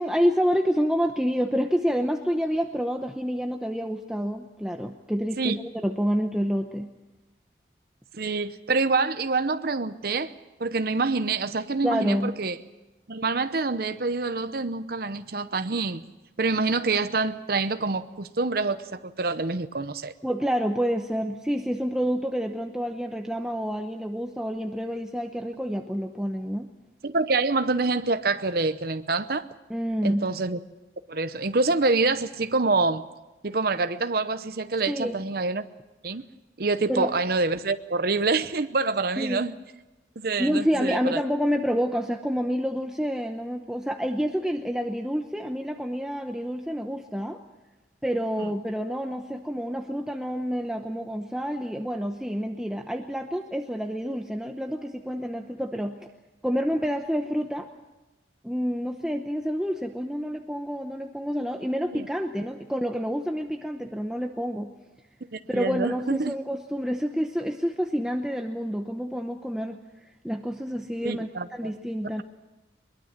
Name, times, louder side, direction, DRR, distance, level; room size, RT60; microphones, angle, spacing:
voice 1, 0.0-6.9 11.8-12.4 20.2-26.7 29.7-30.3 34.9-35.2 36.9-37.1 39.2-39.4 40.4-47.4 48.0-56.0 56.4-57.7 58.4-64.7 65.5-69.8 70.2-72.2, equal, 5° right, 3 dB, 0.8 m, -28 dB
voice 2, 8.1-10.3 10.6-12.6 13.1-16.0 16.4-20.1 27.0-29.4 30.0-30.6 31.1-33.0 33.4-35.7 36.0-36.3 36.6-39.5 40.2-41.2 48.4-48.5 61.9-62.1 65.3-66.3 71.0-71.7, right 3 dB, 55° right, 10 dB, 0.8 m, -26 dB
22.0 x 21.0 x 7.4 m, 1.1 s
head